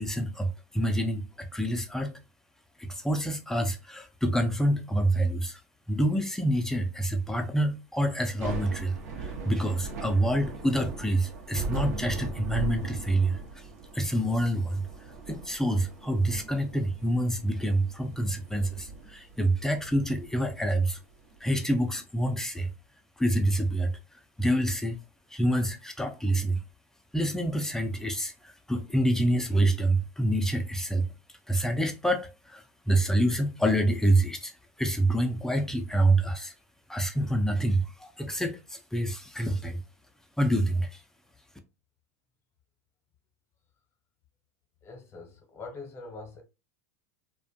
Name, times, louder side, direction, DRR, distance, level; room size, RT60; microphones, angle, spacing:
voice 1, 0.0-2.1 2.8-5.6 5.9-13.7 13.9-14.9 15.3-21.0 21.4-22.7 23.2-23.9 24.4-25.0 25.3-26.6 27.1-31.1 31.5-36.5 36.9-39.8 40.4-41.0, right 1 dB, 5° left, 0.4 m, -27 dB
Thunder / Rain, 8.2-21.4, right 4 dB, 75° right, 0.7 m, -39 dB
voice 2, 44.8-46.4, left 3 dB, 30° left, 0.7 m, -43 dB
2.4 x 2.2 x 2.6 m
hypercardioid pair, 105°, 9 cm